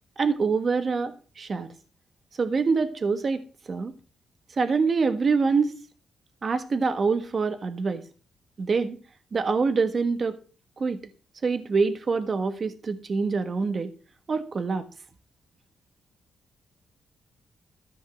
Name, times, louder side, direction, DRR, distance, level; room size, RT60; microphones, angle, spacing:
voice 1, 0.2-1.7 2.4-3.9 4.5-5.7 6.4-8.0 8.6-9.0 9.3-10.4 10.8-11.0 11.4-13.9 14.3-14.9, right 4 dB, 45° right, 8 dB, 1.4 m, -25 dB
13.5 x 5.5 x 7.6 m, 0.37 s
cardioid pair, 85°, 0 cm